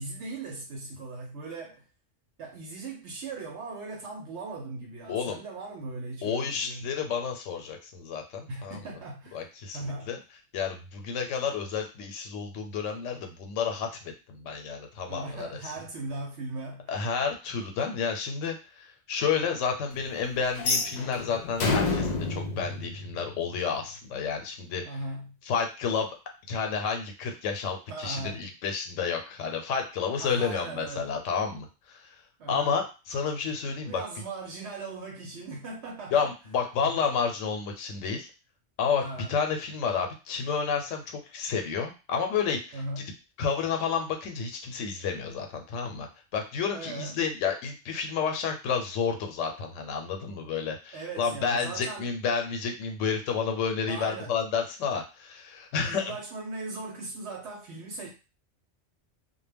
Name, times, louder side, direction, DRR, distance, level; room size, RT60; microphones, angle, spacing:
voice 1, 0.0-1.8 2.4-6.9 8.5-9.5 9.7-10.1 15.1-16.9 24.8-25.4 27.9-28.5 30.2-31.2 32.4-32.8 33.8-36.3 36.8-37.0 38.9-39.3 42.7-43.2 46.7-47.2 50.9-52.1 53.9-54.4 55.9-58.1, right 3 dB, 70° right, 0.8 m, -38 dB
voice 2, 5.1-5.4 6.2-8.8 9.3-10.2 10.5-15.5 16.9-24.8 25.5-26.1 26.5-32.0 32.5-34.0 36.1-38.3 38.8-39.0 39.3-42.8 43.4-46.1 46.3-56.1, left 6 dB, 90° left, 0.9 m, -30 dB
sound 1, 20.6-23.7, left 3 dB, 70° left, 0.4 m, -29 dB
2.1 x 2.1 x 3.3 m
omnidirectional pair, 1.2 m